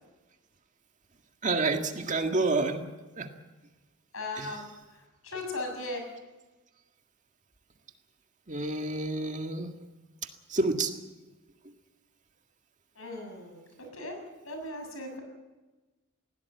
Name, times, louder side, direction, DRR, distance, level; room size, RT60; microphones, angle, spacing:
voice 1, 1.4-2.9 3.2-3.3 4.4-4.6 8.5-9.8 10.2-10.9 11.6-11.7, right 3 dB, 35° right, 5 dB, 1.9 m, -29 dB
voice 2, 4.1-4.7 5.2-6.0 13.0-13.7 13.9-14.2 14.4-15.2, left 2 dB, 75° left, 4 dB, 6.9 m, -37 dB
20.5 x 16.5 x 9.4 m, 1.2 s
head